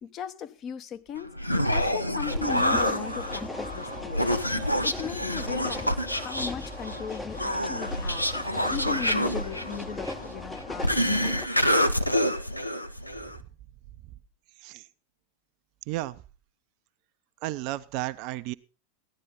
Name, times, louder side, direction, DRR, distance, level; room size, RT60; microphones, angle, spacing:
voice 1, 0.0-1.3 1.7-4.3 4.8-8.2 8.7-11.5, left 8 dB, 30° left, 9 dB, 0.9 m, -37 dB
Human voice, 1.2-13.4, equal, 90° left, 0.8 m, -27 dB
sound 1, 2.3-11.5, left 2 dB, 5° left, 0.7 m, -38 dB
voice 2, 15.9-16.2 17.4-18.5, right 17 dB, 45° right, 14 dB, 0.5 m, -33 dB
15.0 x 11.0 x 4.0 m, 0.35 s
figure-of-eight pair, 90°, 0 cm